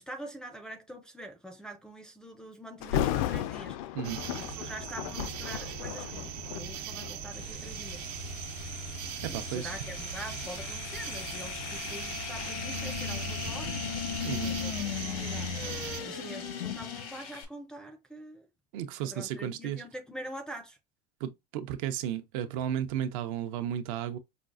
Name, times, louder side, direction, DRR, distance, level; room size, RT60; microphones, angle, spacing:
voice 1, 0.0-3.9 4.3-8.1 9.3-13.9 14.2-15.5 16.0-18.5 19.0-20.8, right 1 dB, 5° left, 0.3 m, -45 dB
Thunder, 2.8-7.8 8.4-8.7 9.3-12.1 12.5-12.6, left 11 dB, 70° left, 0.4 m, -35 dB
sound 1, 4.0-16.0, right 5 dB, 90° right, 0.9 m, -39 dB
sound 2, 7.3-17.4, left 8 dB, 90° left, 1.0 m, -38 dB
voice 2, 9.2-9.8 14.2-14.5 18.7-19.8 21.2-24.2, right 10 dB, 70° right, 0.6 m, -34 dB
5.1 x 2.4 x 2.4 m
cardioid pair, 165°, 18 cm